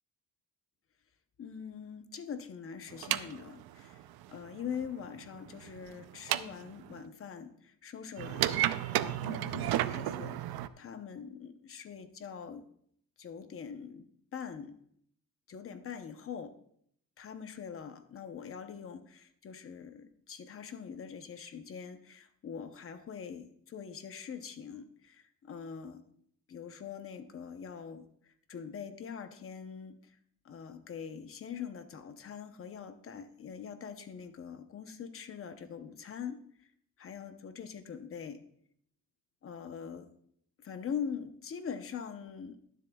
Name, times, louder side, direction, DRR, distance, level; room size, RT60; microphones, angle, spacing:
voice 1, 1.4-4.0 4.3-8.7 9.0-12.6 13.2-14.1 14.3-14.8 15.5-16.5 17.2-26.0 26.5-30.2 30.4-36.4 37.0-38.4 39.4-40.1 40.6-42.8, left 7 dB, 35° left, 8 dB, 0.8 m, -43 dB
sound 1, 2.9-7.0 8.2-10.7, right 13 dB, 80° right, 0.6 m, -33 dB
22.0 x 7.4 x 2.3 m, 0.67 s
cardioid pair, 165°, 36 cm